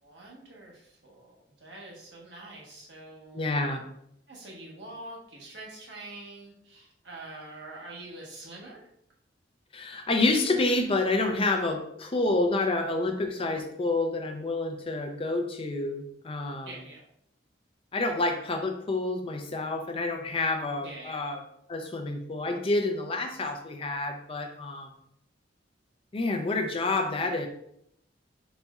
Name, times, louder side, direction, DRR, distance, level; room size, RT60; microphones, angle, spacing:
voice 1, 0.0-3.5 4.3-8.8 16.6-17.0 20.8-21.2, right 2 dB, 70° right, -3 dB, 1.2 m, -45 dB
voice 2, 3.3-3.8 9.7-16.8 17.9-21.4 21.7-24.9 26.1-27.5, left 2 dB, 30° left, 5 dB, 0.5 m, -28 dB
4.1 x 4.1 x 2.3 m, 0.74 s
head